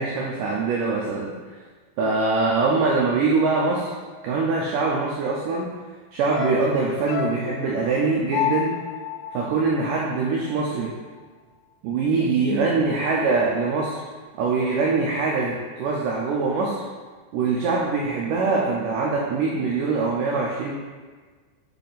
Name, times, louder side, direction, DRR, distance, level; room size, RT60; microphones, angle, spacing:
voice 1, 0.0-1.3 2.0-3.9 4.2-5.7 6.1-8.7 9.3-10.9 11.8-14.0 14.4-16.8 17.3-20.7, right 4 dB, 85° right, -3 dB, 1.9 m, -23 dB
sound 1, 6.3-10.7 11.0-11.1, left 11 dB, 85° left, 2.4 m, -31 dB
8.3 x 3.3 x 4.0 m, 1.5 s
omnidirectional pair, 4.5 m